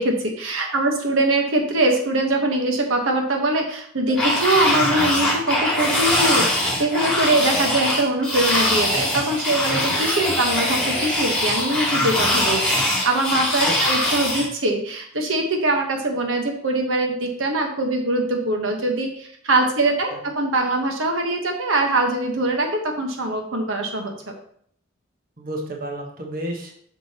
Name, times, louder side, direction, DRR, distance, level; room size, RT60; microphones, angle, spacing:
voice 1, 0.0-24.1, right 2 dB, 90° right, 3 dB, 1.2 m, -22 dB
sound 1, 4.2-14.5, left 1 dB, 5° left, 2.5 m, -22 dB
voice 2, 25.4-26.7, right 1 dB, 45° right, 1 dB, 1.3 m, -32 dB
7.9 x 6.2 x 3.0 m, 0.64 s
head